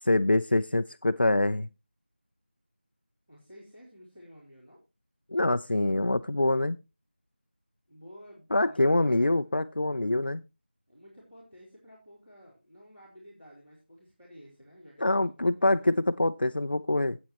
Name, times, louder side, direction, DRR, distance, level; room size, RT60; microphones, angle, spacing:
voice 1, 0.0-1.7 5.3-6.8 8.5-10.4 15.0-17.2, left 2 dB, 60° left, 0.5 m, -25 dB
voice 2, 3.3-4.8 7.9-9.6 10.9-16.1, equal, 10° right, 2.7 m, -52 dB
15.0 x 8.5 x 2.9 m
figure-of-eight pair, 175°, 6 cm